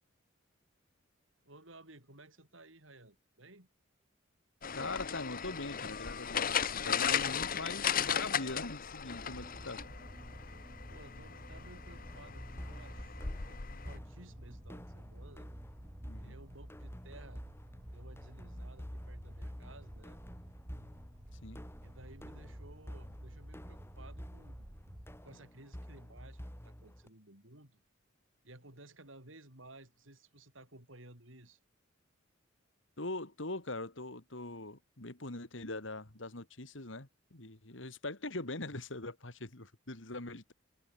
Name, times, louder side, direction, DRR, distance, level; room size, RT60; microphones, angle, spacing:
voice 1, 1.4-3.7 10.9-15.5 16.2-17.4 17.9-20.2 21.8-24.7 25.2-27.8 28.4-31.6, right 2 dB, 80° right, 7.9 m, -56 dB
sound 1, 4.6-14.0, left 7 dB, 45° left, 1.2 m, -36 dB
voice 2, 4.8-9.8 16.0-16.4 21.4-21.6 33.0-40.5, left 2 dB, 70° left, 3.0 m, -42 dB
sound 2, 9.1-25.3, equal, 30° right, 2.5 m, -50 dB
sound 3, 12.0-27.1, equal, 15° left, 2.9 m, -50 dB
head